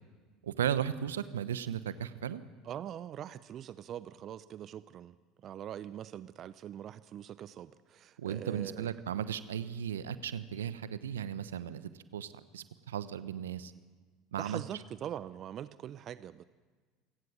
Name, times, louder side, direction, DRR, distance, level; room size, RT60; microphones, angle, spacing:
voice 1, 0.4-2.4 8.2-13.7 14.3-14.6, right 9 dB, 80° right, 14 dB, 1.0 m, -36 dB
voice 2, 2.6-8.9 14.4-16.4, right 10 dB, 45° right, 16 dB, 0.7 m, -43 dB
28.0 x 17.0 x 7.3 m, 1.5 s
hypercardioid pair, 70°, 0 cm